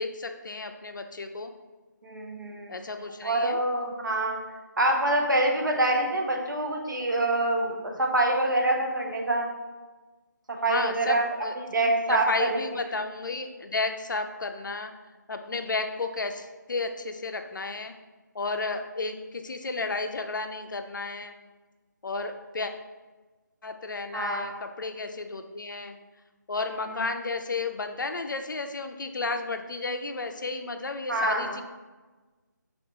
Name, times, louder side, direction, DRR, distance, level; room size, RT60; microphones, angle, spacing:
voice 1, 0.0-1.5 2.7-3.6 10.7-11.5 12.1-14.9 15.3-17.9 18.3-21.3 22.0-22.7 23.6-25.9 26.5-31.6, left 3 dB, 75° left, 6 dB, 0.4 m, -32 dB
voice 2, 2.0-2.7 3.2-4.4 4.8-9.5 10.5-11.2 11.7-12.6 24.1-24.6 31.1-31.6, right 1 dB, 80° right, 1 dB, 0.7 m, -26 dB
3.4 x 2.4 x 2.8 m, 1.3 s
figure-of-eight pair, 160°, 10 cm